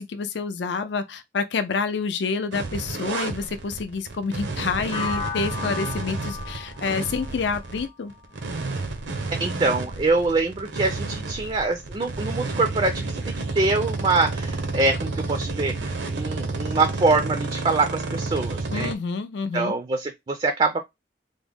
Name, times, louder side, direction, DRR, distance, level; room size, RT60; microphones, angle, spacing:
voice 1, 0.0-8.1 18.7-19.8, left 4 dB, 75° left, 0.5 m, -28 dB
sound 1, 2.5-18.9, right 3 dB, 75° right, 0.7 m, -31 dB
sound 2, 4.9-8.8, left 5 dB, 35° left, 0.6 m, -35 dB
voice 2, 9.4-18.9 19.5-20.8, right 3 dB, 30° right, 0.4 m, -24 dB
3.5 x 2.1 x 3.4 m
head